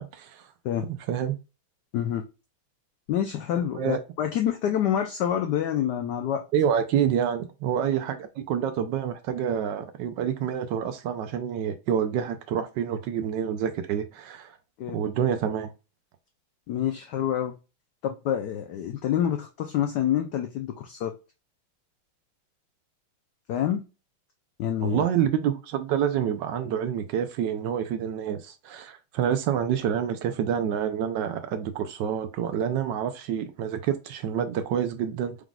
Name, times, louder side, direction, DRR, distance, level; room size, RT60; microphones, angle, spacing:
voice 1, 0.0-0.5 0.9-1.4 3.7-4.0 6.5-14.6 14.9-15.7 24.8-35.4, right 9 dB, 75° right, 1.0 m, -27 dB
voice 2, 1.9-2.2 3.1-6.4 14.8-15.0 16.7-17.5 18.0-21.1 23.5-23.8 24.6-25.0, left 10 dB, 75° left, 0.9 m, -27 dB
4.9 x 3.7 x 2.3 m
omnidirectional pair, 2.3 m